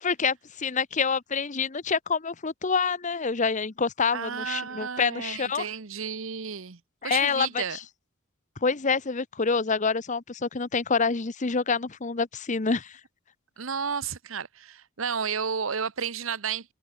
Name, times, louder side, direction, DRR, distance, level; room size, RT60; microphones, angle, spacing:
voice 1, 0.0-5.7 7.0-7.6 8.6-13.0, left 5 dB, 35° left, 0.8 m, -27 dB
voice 2, 4.1-7.8 13.6-16.7, right 6 dB, 75° right, 1.0 m, -32 dB
head